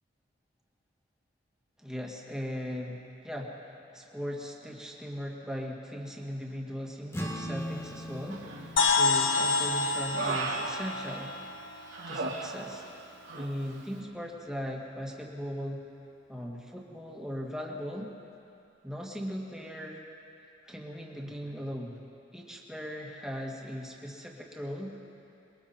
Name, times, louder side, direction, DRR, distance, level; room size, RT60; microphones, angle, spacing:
voice 1, 1.8-11.3 12.1-12.8 13.3-15.8 16.3-18.1 18.8-20.0 20.6-22.0 22.3-24.9, equal, 5° right, -2 dB, 2.2 m, -38 dB
sound 1, 7.1-13.8, equal, 15° left, 1.6 m, -42 dB
Human voice, 8.3-8.9 9.3-11.5 11.9-13.0 13.2-13.5, right 3 dB, 80° right, 2.6 m, -37 dB
sound 2, 8.8-12.5, left 3 dB, 80° left, 1.7 m, -28 dB
27.5 x 22.0 x 4.5 m, 2.7 s
head